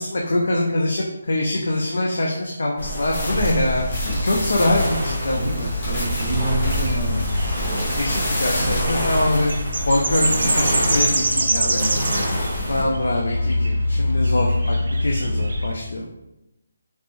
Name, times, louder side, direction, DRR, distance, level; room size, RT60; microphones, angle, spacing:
voice 1, 0.0-5.7 7.9-9.5 9.9-11.8 12.7-16.1, left 1 dB, 65° left, -1 dB, 0.5 m, -24 dB
sound 1, 2.8-12.8, equal, 15° left, 1.1 m, -28 dB
sound 2, 3.1-8.8, equal, 35° left, 0.9 m, -29 dB
sound 3, 3.3-15.7, equal, 50° right, 0.4 m, -25 dB
voice 2, 5.3-7.3 11.3-12.8, right 1 dB, ahead, -14 dB, 0.8 m, -29 dB
3.2 x 2.5 x 3.0 m, 0.92 s
hypercardioid pair, 180°, 0 cm